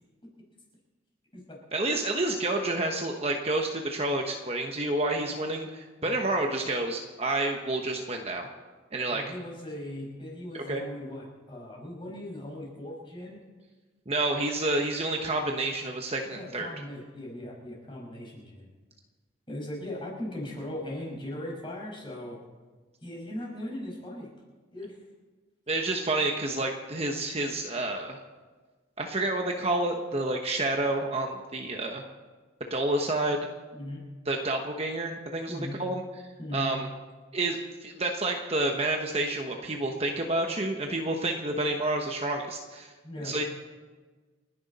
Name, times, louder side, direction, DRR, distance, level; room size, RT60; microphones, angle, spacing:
voice 1, 1.7-8.5 8.9-9.2 10.5-10.8 14.1-16.7 25.7-28.2 29.0-32.0 32.7-33.4 34.3-36.0 36.5-36.9 37.3-42.9 43.2-43.4, right 2 dB, 30° right, 2 dB, 1.1 m, -29 dB
voice 2, 9.1-13.4 16.3-18.7 19.5-22.4 23.0-24.3 24.7-25.0 33.7-34.0 35.5-35.8 36.4-36.7 43.0-43.3, left 1 dB, 25° left, -2 dB, 5.4 m, -38 dB
29.5 x 10.5 x 4.2 m, 1.3 s
head